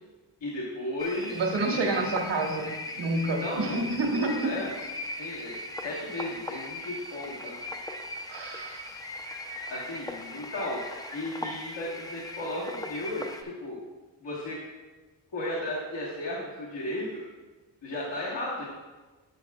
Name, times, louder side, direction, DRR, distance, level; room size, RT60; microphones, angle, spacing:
voice 1, 0.4-1.4 3.4-3.8 4.1-4.7 5.2-7.6 9.6-10.8 11.1-13.8 14.2-14.6 15.3-17.2 17.8-18.6, left 1 dB, 70° left, -6 dB, 1.5 m, -35 dB
sound 1, 1.0-13.4, left 1 dB, 10° left, 0.4 m, -39 dB
voice 2, 1.3-2.7 3.0-4.5 8.3-9.0, right 2 dB, 75° right, 1 dB, 1.3 m, -28 dB
10.5 x 7.4 x 2.3 m, 1.3 s
wide cardioid pair, 130°, 43 cm